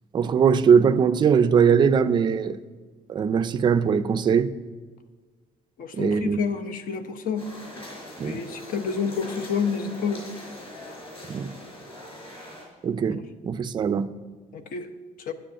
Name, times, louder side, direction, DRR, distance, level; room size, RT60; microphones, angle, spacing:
voice 1, 0.1-2.6 3.1-4.5 5.9-6.4 8.2-8.4 11.3-11.5 12.8-14.1, right 6 dB, 30° right, 0.4 m, -21 dB
voice 2, 5.8-7.5 8.2-10.2 13.1-13.2 14.7-14.9 15.3-15.4, left 6 dB, 60° left, 0.9 m, -29 dB
sound 1, 7.4-12.6, left 1 dB, 30° left, 4.3 m, -42 dB
10.0 x 7.0 x 8.8 m
cardioid pair, 175°, 16 cm